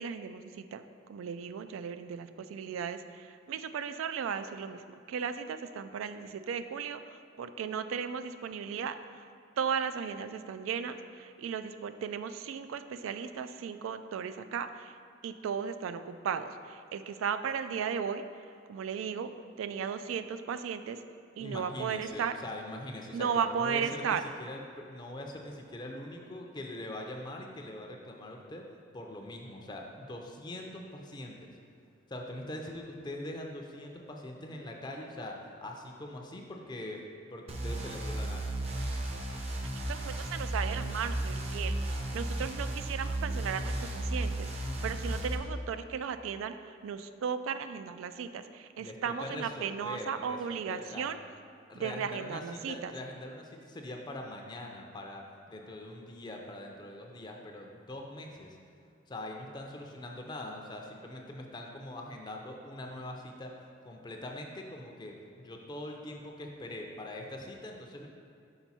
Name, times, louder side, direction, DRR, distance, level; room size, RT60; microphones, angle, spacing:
voice 1, 0.0-9.2 9.6-15.0 15.2-18.2 18.7-19.3 19.6-21.0 21.4-22.4 23.1-24.2 39.7-44.5 44.8-51.2 51.7-52.9, right 7 dB, 90° right, 11 dB, 0.3 m, -36 dB
voice 2, 21.4-28.6 28.9-31.5 32.1-35.4 35.6-37.0 37.3-38.5 48.8-51.1 51.7-58.6 59.1-63.5 63.8-68.1, left 1 dB, 20° left, 1 dB, 0.4 m, -42 dB
sound 1, 37.5-45.4, right 1 dB, 30° right, 0.6 m, -34 dB
5.8 x 4.4 x 4.1 m, 2.4 s
head